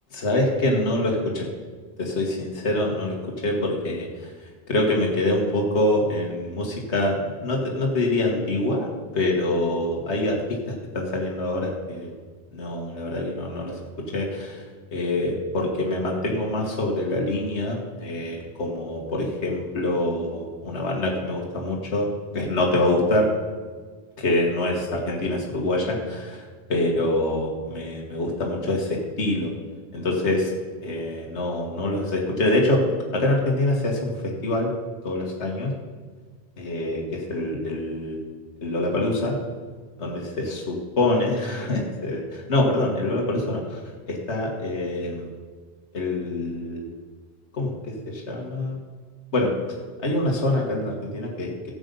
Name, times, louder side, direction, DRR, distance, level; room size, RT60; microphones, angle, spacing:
voice 1, 0.2-1.5 2.0-3.2 3.4-4.3 4.7-8.9 9.1-10.4 10.9-12.1 12.5-13.8 14.1-14.6 14.9-22.1 22.3-23.3 24.2-29.5 29.9-30.5 30.8-32.8 33.1-34.7 35.0-35.7 36.6-38.2 38.6-39.4 40.0-43.8 44.1-45.3 45.9-47.0 47.5-48.8 49.3-49.5 50.0-51.5, left 1 dB, 80° left, -1 dB, 1.9 m, -25 dB
13.0 x 8.1 x 5.4 m, 1.5 s
omnidirectional pair, 1.1 m